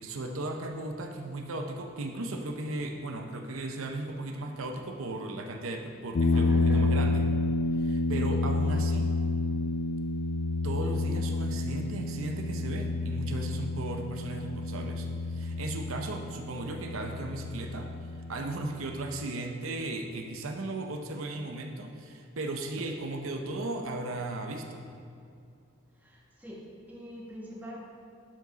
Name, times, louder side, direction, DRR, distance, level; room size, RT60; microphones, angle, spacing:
voice 1, 0.0-7.3 7.8-9.1 10.6-17.9 18.1-24.9, right 2 dB, 85° right, 4 dB, 0.7 m, -36 dB
sound 1, 6.1-19.2, left 2 dB, 55° left, 0.4 m, -30 dB
voice 2, 6.3-7.0 8.7-8.9 26.0-27.8, equal, 10° right, -4 dB, 1.1 m, -43 dB
11.5 x 4.9 x 4.0 m, 2.4 s
head